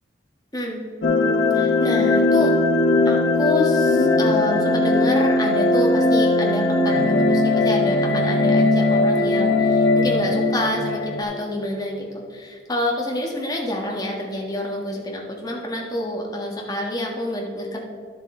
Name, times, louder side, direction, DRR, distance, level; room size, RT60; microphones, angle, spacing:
sound 1, 1.0-11.2, left 2 dB, 85° left, 1.2 m, -19 dB
voice 1, 1.5-2.5 3.0-17.8, left 1 dB, 20° left, -1 dB, 1.5 m, -27 dB
11.0 x 7.5 x 3.8 m, 2.2 s
head